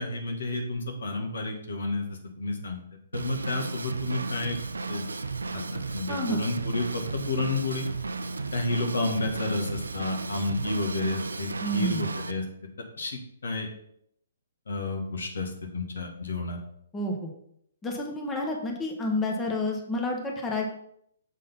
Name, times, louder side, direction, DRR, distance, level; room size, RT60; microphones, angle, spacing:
voice 1, 0.0-2.8 3.1-4.6 4.9-5.0 5.5-5.6 5.9-7.9 8.5-12.4 13.0-13.7 14.7-16.6, left 2 dB, 75° left, 3 dB, 1.5 m, -31 dB
Drum kit / Drum, 3.1-12.3, right 3 dB, 85° right, 0.5 m, -34 dB
voice 2, 6.1-6.4 11.6-12.1 16.9-17.3 17.8-20.6, left 1 dB, 15° left, 0 dB, 1.0 m, -29 dB
6.6 x 3.8 x 5.2 m, 0.72 s
hypercardioid pair, 135°, 0 cm